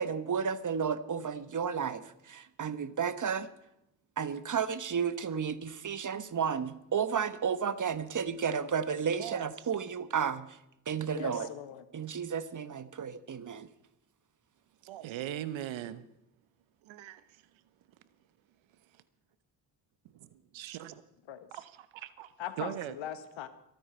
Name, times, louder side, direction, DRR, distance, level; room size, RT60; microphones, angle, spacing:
voice 1, 0.0-3.5 4.2-10.6 10.9-11.5 11.9-13.7, right 7 dB, 35° right, 13 dB, 1.3 m, -32 dB
voice 2, 11.1-11.8 21.3-21.5 22.4-23.5, left 11 dB, 65° left, 11 dB, 1.5 m, -40 dB
voice 3, 14.8-16.1 16.9-17.2 18.9-19.0 20.0-21.0 21.5-22.9, right 12 dB, 65° right, 14 dB, 1.1 m, -40 dB
23.5 x 9.2 x 4.5 m, 0.82 s
hypercardioid pair, 50°, 49 cm